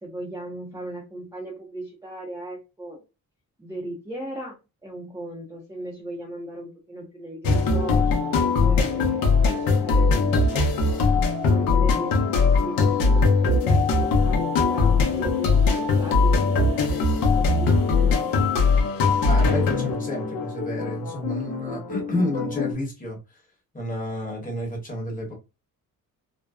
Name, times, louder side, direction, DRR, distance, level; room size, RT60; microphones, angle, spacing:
voice 1, 0.0-3.0 3.6-4.6 4.8-10.3 11.5-17.0 17.4-18.5, right 1 dB, 10° right, 0.5 m, -37 dB
sound 1, 7.4-22.7, left 4 dB, 75° left, 0.7 m, -21 dB
voice 2, 19.2-23.2 23.7-25.3, left 1 dB, 25° left, 1.1 m, -30 dB
2.6 x 2.1 x 2.2 m
cardioid pair, 140°, 35 cm